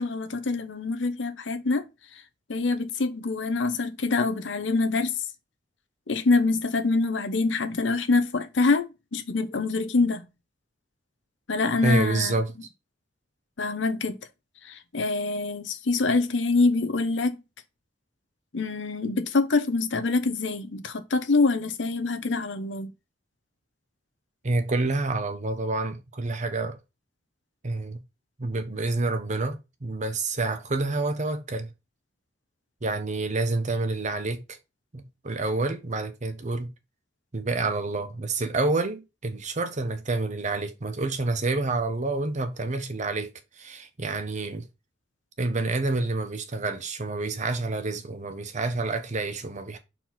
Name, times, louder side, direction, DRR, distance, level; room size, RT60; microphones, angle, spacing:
voice 1, 0.0-1.8 2.5-5.2 6.1-10.3 11.5-12.4 13.6-14.2 14.6-17.4 18.5-22.9, left 3 dB, 90° left, 0.9 m, -25 dB
voice 2, 11.8-12.5 24.4-26.8 27.6-28.0 28.4-31.7 32.8-34.6 34.9-36.7 37.3-44.6 45.4-49.8, right 3 dB, 40° right, 0.9 m, -28 dB
4.5 x 4.4 x 5.7 m
head